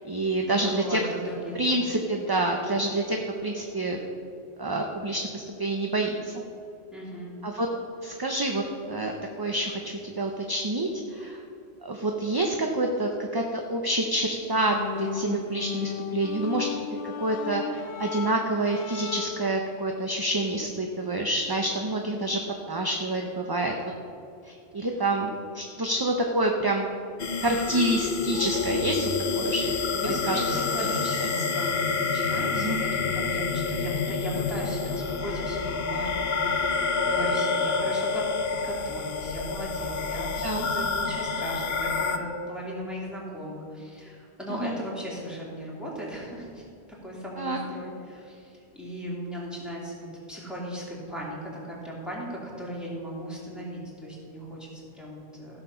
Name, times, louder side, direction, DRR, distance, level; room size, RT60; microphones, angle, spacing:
voice 1, 0.0-1.0 1.6-4.0 4.6-6.3 7.4-7.7 8.0-11.4 11.8-16.8 17.2-22.4 22.7-23.7 24.5-26.9 27.4-29.6 30.2-30.4 30.8-30.9 32.5-32.8 40.4-41.1 44.6-44.7 47.4-47.6, right 2 dB, 25° right, 2 dB, 0.7 m, -28 dB
voice 2, 0.6-1.8 6.9-7.3 29.9-46.6 47.0-55.6, equal, ahead, -5 dB, 2.9 m, -37 dB
sound 1, 14.5-19.6, left 9 dB, 80° left, 0.9 m, -35 dB
sound 2, 27.2-42.2, left 4 dB, 65° left, 1.1 m, -28 dB
15.5 x 6.7 x 5.6 m, 2.5 s
omnidirectional pair, 1.1 m